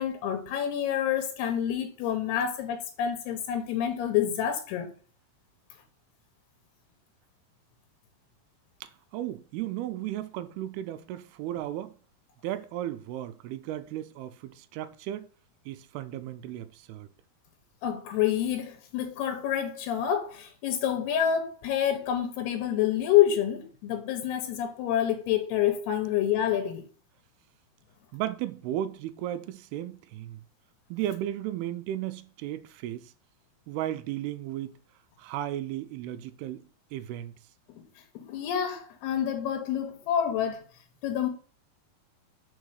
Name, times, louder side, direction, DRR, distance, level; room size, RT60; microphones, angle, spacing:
voice 1, 0.0-4.9 17.8-26.8 38.2-40.6 41.0-41.3, left 10 dB, 85° left, 2.9 m, -27 dB
voice 2, 8.8-11.9 12.4-15.3 15.7-17.1 28.1-30.4 30.9-33.1 33.7-34.8 35.2-36.6 36.9-37.3, right 12 dB, 85° right, 2.5 m, -35 dB
5.5 x 4.6 x 6.3 m
omnidirectional pair, 4.6 m